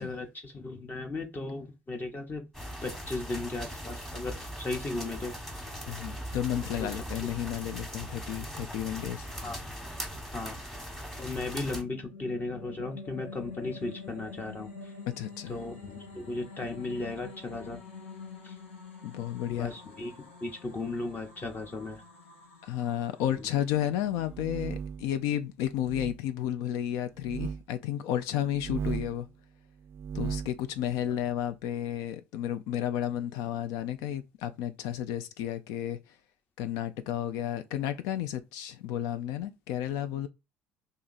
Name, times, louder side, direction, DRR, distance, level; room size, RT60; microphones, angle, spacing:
voice 1, 0.0-2.4 2.8-5.6 6.8-6.9 7.2-7.3 9.4-9.6 10.3-10.6 11.2-14.9 15.5-17.8 18.4-18.5 19.5-22.0, left 2 dB, 30° left, 0.8 m, -36 dB
sound 1, 2.5-11.8, equal, 5° left, 1.1 m, -40 dB
voice 2, 5.9-9.3 15.1-15.6 19.0-19.8 22.6-29.3 30.1-36.2 36.6-40.3, left 11 dB, 65° left, 0.3 m, -32 dB
sound 2, 11.0-24.3, left 4 dB, 90° left, 0.8 m, -47 dB
sound 3, 24.1-25.1 25.8-26.2 27.2-27.6 28.5-29.2 29.9-30.6, right 7 dB, 40° right, 0.4 m, -36 dB
2.7 x 2.5 x 3.9 m
hypercardioid pair, 60°, 6 cm